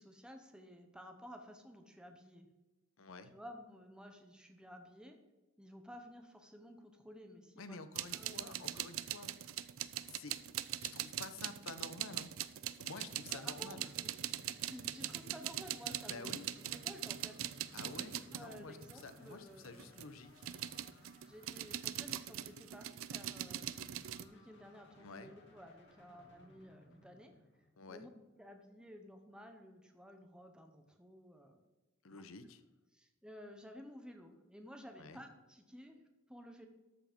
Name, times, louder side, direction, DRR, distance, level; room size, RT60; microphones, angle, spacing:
voice 1, 0.0-2.5 3.3-5.2 5.6-7.8 8.1-9.0 13.3-14.1 14.4-19.9 21.2-27.3 27.9-31.6 32.1-32.2 32.9-36.7, equal, 5° right, 4 dB, 0.9 m, -54 dB
voice 2, 3.0-3.3 7.6-9.3 10.0-10.4 10.8-12.3 12.8-13.9 16.1-16.5 17.7-20.4 24.9-25.3 27.8-28.1 32.0-32.6 35.0-35.2, left 3 dB, 75° left, 11 dB, 0.8 m, -50 dB
sound 1, 8.0-19.2 19.6-24.2, right 12 dB, 70° right, 0.5 m, -42 dB
sound 2, 13.2-28.1, left 1 dB, 55° left, 2.1 m, -63 dB
13.0 x 5.0 x 5.2 m, 1.1 s
head